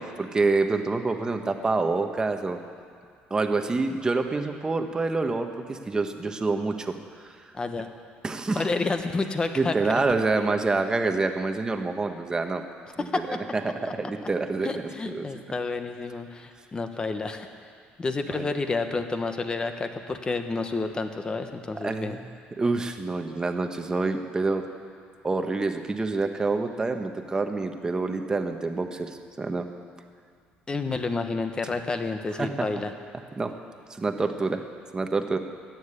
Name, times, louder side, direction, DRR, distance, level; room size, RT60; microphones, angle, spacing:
voice 1, 0.0-2.6 3.3-7.0 7.2-7.4 8.2-8.7 9.6-12.6 13.0-15.4 18.3-18.5 21.7-22.2 22.6-24.6 25.2-29.7 32.4-32.5 33.4-33.5 33.9-34.6 34.9-35.4, right 3 dB, 20° right, 6 dB, 1.1 m, -27 dB
voice 2, 7.5-7.9 8.6-10.0 13.1-13.4 13.8-13.9 14.6-17.5 18.0-22.2 30.7-32.9, left 3 dB, 25° left, 7 dB, 1.2 m, -30 dB
14.5 x 9.4 x 9.8 m, 2.2 s
cardioid pair, 120°, 4 cm